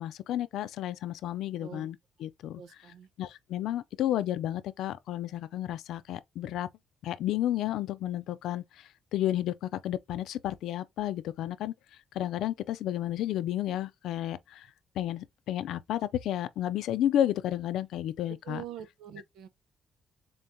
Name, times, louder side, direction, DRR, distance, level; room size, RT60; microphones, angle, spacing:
voice 1, 0.0-2.0 2.2-2.6 3.2-6.7 7.0-8.6 9.1-11.7 12.1-14.7 15.0-18.6, left 12 dB, 85° left, 0.4 m, -31 dB
voice 2, 2.6-3.1 18.3-19.5, right 10 dB, 85° right, 0.6 m, -44 dB
3.8 x 3.5 x 2.6 m
cardioid pair, 90°, 0 cm